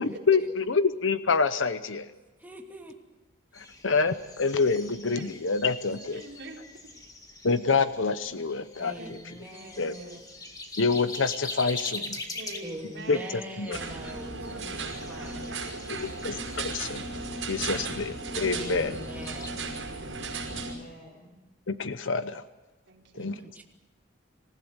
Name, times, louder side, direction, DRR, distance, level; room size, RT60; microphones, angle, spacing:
voice 1, 0.0-2.1 3.5-6.2 7.4-8.9 9.8-10.0 10.8-12.2 13.1-13.8 16.0-17.0 17.3-19.0 21.7-22.4 23.1-23.6, left 4 dB, 80° left, 12 dB, 0.9 m, -27 dB
voice 2, 2.4-2.9 3.6-3.7 5.9-6.0 8.8-10.3 12.6-14.6 15.1-15.6 18.5-19.7 23.2-23.6, right 1 dB, 10° right, 1 dB, 2.7 m, -43 dB
sound 1, 3.5-19.6, left 2 dB, 20° left, 2.1 m, -44 dB
voice 3, 6.1-6.9 9.0-9.2 9.4-10.2 12.3-14.0 15.1-16.3 19.3-20.1 22.8-23.4, right 2 dB, 65° right, 0 dB, 4.2 m, -46 dB
voice 4, 11.8-12.5 14.0-15.2 20.4-21.4, equal, 45° left, -1 dB, 5.4 m, -51 dB
sound 2, 13.7-20.7, right 3 dB, 85° right, 5.4 m, -35 dB
27.0 x 15.5 x 8.1 m, 1.1 s
head